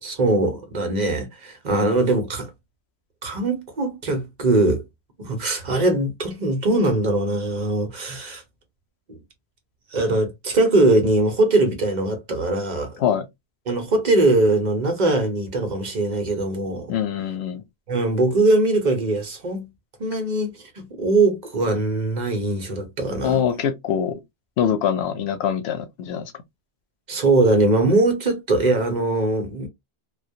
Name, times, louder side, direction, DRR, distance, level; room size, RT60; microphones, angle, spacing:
voice 1, 0.0-2.5 3.2-4.8 5.2-8.4 9.1-9.2 9.9-13.0 13.7-16.9 17.9-19.7 20.0-23.4 27.1-29.7, right 2 dB, 50° right, 0.8 m, -21 dB
voice 2, 16.9-17.6 23.2-24.2 24.6-26.3, left 8 dB, 90° left, 0.8 m, -23 dB
2.2 x 2.1 x 2.6 m
omnidirectional pair, 1.0 m